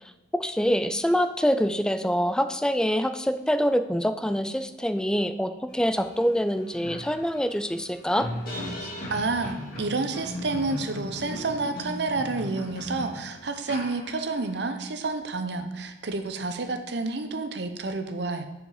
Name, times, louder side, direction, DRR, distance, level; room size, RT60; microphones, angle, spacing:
voice 1, 0.4-8.3, equal, 5° left, 10 dB, 0.3 m, -25 dB
sound 1, 6.0-6.1 6.5-14.5, equal, 55° left, 2.3 m, -37 dB
voice 2, 8.8-18.5, right 3 dB, 65° right, 7 dB, 0.7 m, -30 dB
7.2 x 5.4 x 4.9 m, 1.1 s
head